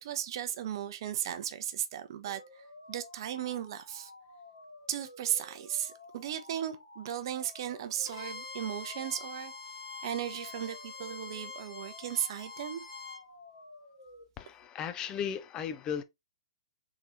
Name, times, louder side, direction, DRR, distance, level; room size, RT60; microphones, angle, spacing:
voice 1, 0.0-4.1 4.9-9.5 10.0-12.8, right 10 dB, 50° right, 0.6 m, -36 dB
sound 1, 2.2-14.2, left 2 dB, 70° left, 1.9 m, -53 dB
Bowed string instrument, 8.1-13.2, left 4 dB, 55° left, 1.2 m, -45 dB
voice 2, 14.4-16.0, left 8 dB, 20° left, 0.4 m, -36 dB
3.7 x 3.1 x 2.8 m
figure-of-eight pair, 120°, 3 cm